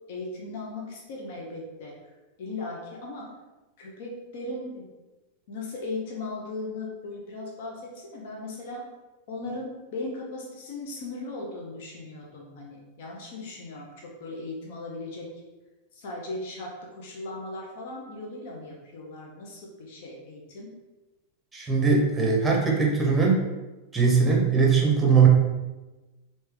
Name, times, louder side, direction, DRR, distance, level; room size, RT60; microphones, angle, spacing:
voice 1, 0.1-1.9 2.4-3.3 3.8-4.9 5.5-8.9 9.3-15.3 15.9-20.7, left 2 dB, 60° left, -2 dB, 0.8 m, -37 dB
voice 2, 21.5-23.4 23.9-25.3, right 5 dB, 10° right, -1 dB, 0.7 m, -20 dB
3.2 x 2.8 x 3.4 m, 1.1 s
supercardioid pair, 145°, 0 cm